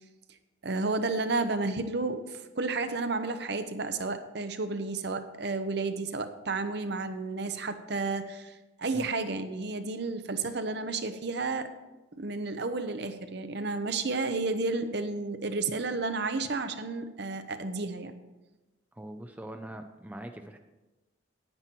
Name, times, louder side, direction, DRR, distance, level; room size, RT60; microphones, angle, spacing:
voice 1, 0.6-11.7 12.2-18.1, right 3 dB, 55° right, 9 dB, 0.8 m, -32 dB
voice 2, 18.9-20.6, right 1 dB, 10° right, 5 dB, 0.5 m, -42 dB
9.7 x 9.3 x 4.5 m, 1.1 s
head